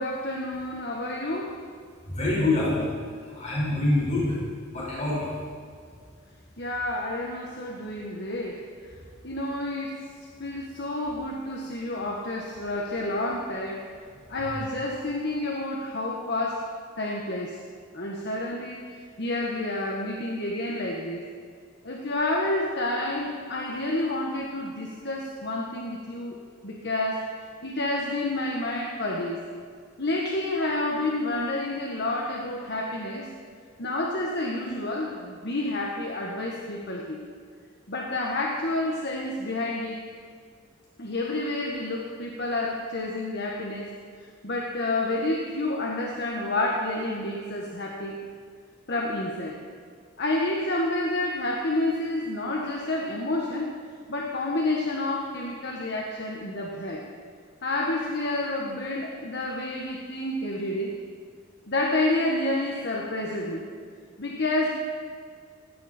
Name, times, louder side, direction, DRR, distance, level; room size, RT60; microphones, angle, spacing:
voice 1, 0.0-1.6 6.6-8.6 9.2-10.0 10.4-13.9 14.3-16.6 17.0-17.6 17.9-21.3 21.8-26.4 26.6-29.4 30.0-33.3 33.8-37.2 37.9-40.0 41.0-43.9 44.4-48.2 48.9-49.6 50.2-53.7 54.1-57.1 57.6-61.0 61.7-63.6 64.2-64.7, left 2 dB, 55° left, -1 dB, 1.6 m, -29 dB
voice 2, 2.2-2.9 3.3-4.4 4.7-5.3, left 2 dB, 35° left, -7 dB, 5.4 m, -25 dB
18.0 x 16.5 x 4.5 m, 2.1 s
head